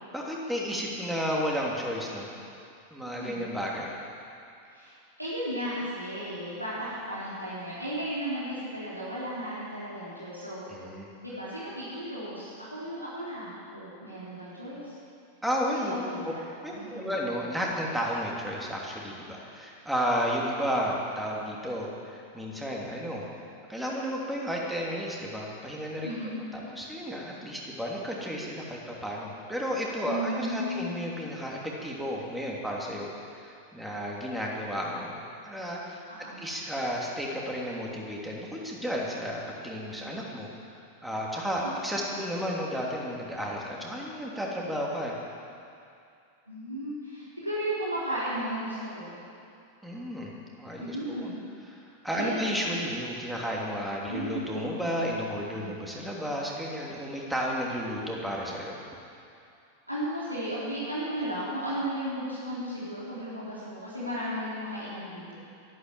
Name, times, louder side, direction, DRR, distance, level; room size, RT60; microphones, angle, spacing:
voice 1, 0.1-2.3 2.9-3.9 10.7-11.1 15.4-16.0 16.2-16.3 16.6-23.2 23.7-26.1 26.5-33.1 33.4-36.0 36.4-40.5 41.0-45.1 49.8-50.3 50.6-51.3 51.8-58.7, equal, 5° right, -3 dB, 3.0 m, -32 dB
voice 2, 3.0-3.4 4.7-4.9 5.2-10.7 11.2-15.0 15.6-16.4 16.7-17.2 26.0-26.4 30.1-31.0 36.1-36.4 41.6-41.7 42.0-42.2 46.5-49.2 50.8-51.4 52.1-52.4 54.0-54.9 55.3-55.9 59.9-65.4, right 1 dB, 90° right, -10 dB, 3.7 m, -35 dB
13.5 x 11.5 x 7.6 m, 2.5 s
figure-of-eight pair, 90°, 0 cm